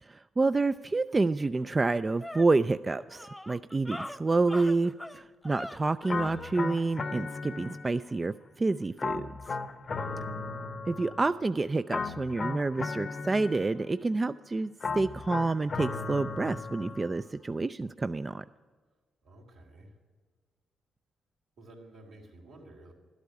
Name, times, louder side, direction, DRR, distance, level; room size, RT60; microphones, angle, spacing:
voice 1, 0.0-9.6 10.9-14.7 14.9-18.4, right 3 dB, 30° right, 12 dB, 0.3 m, -28 dB
sound 1, 1.1-1.2 1.6-6.5, left 1 dB, 5° left, 0.6 m, -43 dB
sound 2, 6.1-8.2 9.0-11.4 11.9-14.0 14.8-17.2, left 4 dB, 50° left, 0.8 m, -36 dB
voice 2, 9.9-10.3 19.2-19.9 21.6-22.9, right 1 dB, 75° right, -1 dB, 3.0 m, -52 dB
12.5 x 8.3 x 8.3 m, 1.5 s
supercardioid pair, 60°, 0 cm